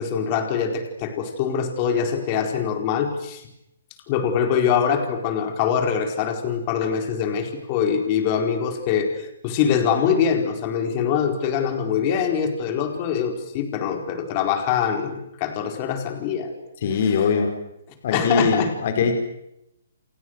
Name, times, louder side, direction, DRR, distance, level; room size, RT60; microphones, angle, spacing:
voice 1, 0.0-3.4 4.1-16.5 18.1-18.7, left 7 dB, 25° left, 5 dB, 4.6 m, -23 dB
voice 2, 16.8-17.5 18.0-19.1, left 5 dB, 45° left, 5 dB, 5.2 m, -21 dB
29.5 x 28.5 x 6.6 m, 0.83 s
hypercardioid pair, 165°, 0 cm